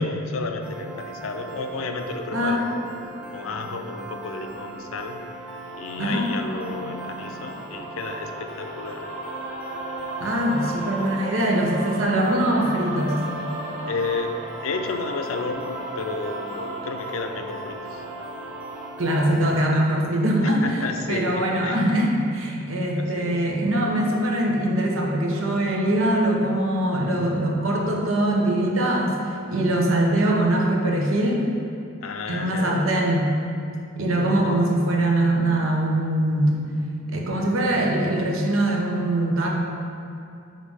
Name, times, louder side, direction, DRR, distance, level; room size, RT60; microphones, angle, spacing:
voice 1, 0.0-3.0 3.3-5.2 5.8-9.1 13.9-18.0 20.4-21.9 22.9-23.4 32.0-33.1 34.1-34.7, left 3 dB, 90° left, 5 dB, 0.5 m, -32 dB
Piano, 0.6-19.6, right 2 dB, 5° right, 0.4 m, -39 dB
voice 2, 2.3-2.7 6.0-6.3 10.2-13.2 19.0-20.6 21.1-29.2 29.5-31.5 32.3-33.4 34.0-36.6 37.1-39.6, right 1 dB, 85° right, -1 dB, 0.9 m, -22 dB
sound 1, 5.3-18.9, right 1 dB, 30° right, 1.0 m, -36 dB
5.3 x 3.8 x 5.4 m, 2.6 s
head